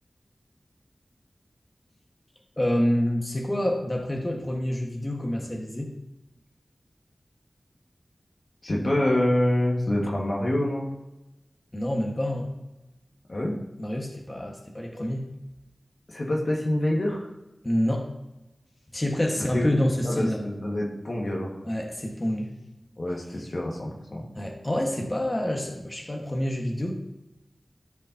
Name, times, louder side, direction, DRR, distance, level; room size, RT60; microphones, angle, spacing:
voice 1, 2.6-5.9 11.7-12.5 13.8-15.3 17.6-18.1 18.9-20.4 21.6-22.5 24.3-26.9, left 1 dB, 30° left, 0 dB, 1.6 m, -27 dB
voice 2, 8.6-10.9 13.3-13.6 16.1-17.3 19.5-19.8 20.0-21.5 23.0-24.3, left 1 dB, 60° left, -2 dB, 1.8 m, -26 dB
13.5 x 5.2 x 2.9 m, 0.97 s
cardioid pair, 45°, 0 cm